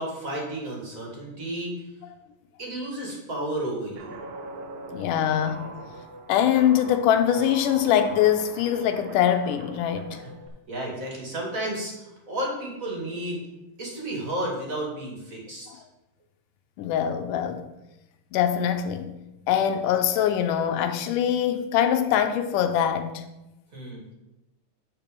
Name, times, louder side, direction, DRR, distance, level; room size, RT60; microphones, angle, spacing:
voice 1, 0.0-1.8 2.6-4.2 10.2-10.3 10.7-13.5 13.8-15.8 23.7-24.1, right 1 dB, 30° right, 2.1 m, -32 dB
Guitar, 4.0-10.5, right 2 dB, 70° right, 1.9 m, -42 dB
voice 2, 4.9-5.6 6.3-10.2 16.8-17.6 18.3-19.2 19.5-23.2, left 9 dB, 80° left, 2.2 m, -23 dB
8.7 x 4.5 x 6.9 m
omnidirectional pair, 3.7 m